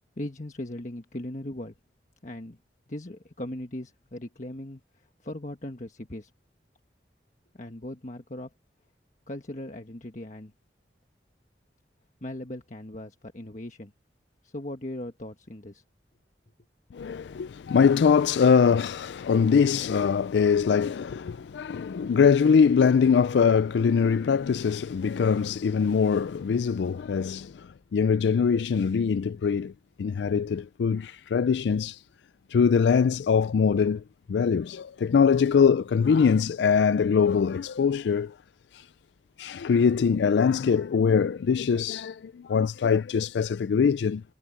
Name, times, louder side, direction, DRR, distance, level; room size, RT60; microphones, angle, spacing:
voice 1, 0.2-1.7 2.2-2.6 2.9-6.3 7.5-8.5 9.3-10.5 12.2-13.9 14.4-15.8, left 1 dB, 45° left, 1.4 m, -38 dB
voice 2, 16.9-29.7 30.0-32.0 32.5-34.0 34.3-38.3 38.7-38.8 39.4-44.2, left 6 dB, 80° left, 0.4 m, -23 dB
head